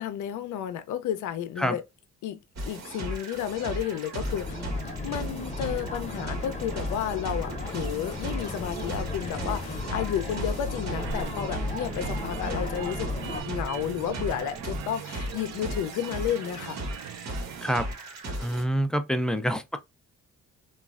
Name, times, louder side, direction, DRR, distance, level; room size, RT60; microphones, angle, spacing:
voice 1, 0.0-1.8 2.2-2.4 2.6-13.1 13.4-16.8, left 9 dB, 80° left, 0.5 m, -32 dB
sound 1, 2.6-18.6, right 1 dB, 60° right, 1.1 m, -36 dB
sound 2, 4.2-13.4, left 2 dB, 20° left, 0.8 m, -35 dB
sound 3, 11.0-17.9, right 10 dB, 80° right, 0.5 m, -41 dB
voice 2, 18.4-19.8, equal, ahead, 0.4 m, -26 dB
3.0 x 2.3 x 2.4 m
cardioid pair, 90°, 30 cm